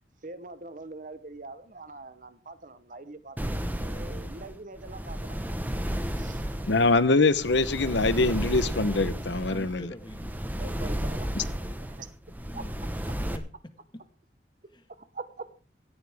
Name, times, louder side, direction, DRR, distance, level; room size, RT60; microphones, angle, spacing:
voice 1, 0.2-3.4 3.8-5.4 6.2-6.4 10.5-11.7 12.0-12.1 12.5-12.6 15.1-15.5, right 3 dB, 45° right, 0.9 m, -43 dB
sound 1, 3.4-13.4, equal, 10° right, 1.1 m, -33 dB
voice 2, 6.7-9.9 11.4-11.5, left 3 dB, 70° left, 0.9 m, -23 dB
voice 3, 9.3-10.3 12.3-13.4 14.7-14.8, left 1 dB, 25° left, 1.5 m, -46 dB
17.5 x 13.5 x 3.5 m
head